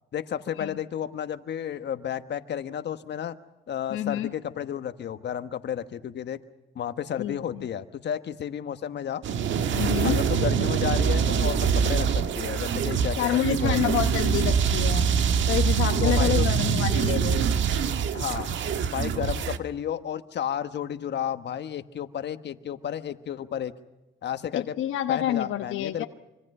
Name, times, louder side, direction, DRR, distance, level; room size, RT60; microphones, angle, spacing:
voice 1, 0.1-3.4 3.7-6.4 6.7-9.2 10.0-13.9 16.0-16.5 18.1-18.5 18.9-23.7 24.2-24.7 25.1-26.1, left 9 dB, 60° left, 10 dB, 1.3 m, -32 dB
voice 2, 3.9-4.3 7.2-7.7 9.7-10.2 13.2-15.1 15.5-17.6 24.5-26.1, left 12 dB, 85° left, 8 dB, 1.1 m, -28 dB
sound 1, 9.2-19.6, right 7 dB, 70° right, 1.5 m, -24 dB
25.5 x 24.5 x 5.5 m, 1.0 s
cardioid pair, 90°, 20 cm